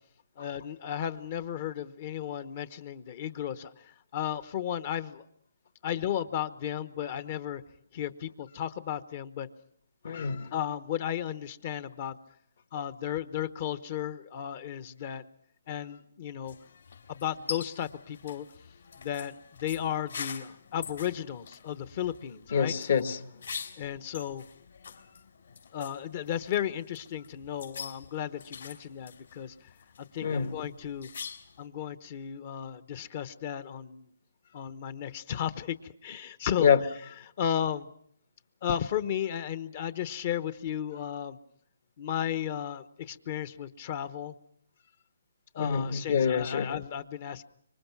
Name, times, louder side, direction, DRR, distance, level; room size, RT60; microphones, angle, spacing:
voice 1, 0.4-5.2 5.8-7.6 7.9-9.5 10.5-12.2 12.7-15.2 15.7-16.5 17.1-18.5 19.0-22.8 23.8-24.4 25.7-29.5 30.1-31.1 31.6-34.1 34.5-36.7 37.4-37.9 38.6-41.4 42.0-44.3 45.5-47.4, left 9 dB, 35° left, 1.0 m, -34 dB
voice 2, 10.0-10.5 22.5-23.3 30.2-30.5 36.6-36.8 45.6-46.7, left 7 dB, 55° left, 1.5 m, -26 dB
sound 1, 16.4-31.7, left 6 dB, 70° left, 4.3 m, -45 dB
26.0 x 23.5 x 6.0 m
hypercardioid pair, 160°, 0 cm